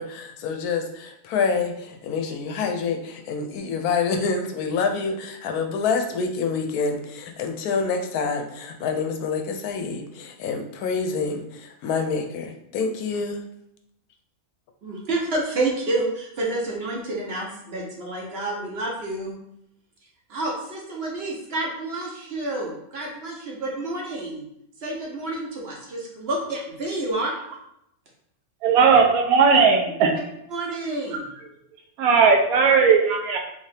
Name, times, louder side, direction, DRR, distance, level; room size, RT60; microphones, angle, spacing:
voice 1, 0.0-13.4, left 5 dB, 85° left, 5 dB, 1.1 m, -27 dB
voice 2, 14.8-19.4 20.3-24.5 24.8-27.4 30.5-31.2, right 2 dB, 55° right, -2 dB, 0.8 m, -29 dB
voice 3, 28.6-30.2 31.1-31.2 32.0-33.4, right 5 dB, 75° right, 2 dB, 1.1 m, -17 dB
3.3 x 2.7 x 3.3 m, 0.77 s
omnidirectional pair, 1.6 m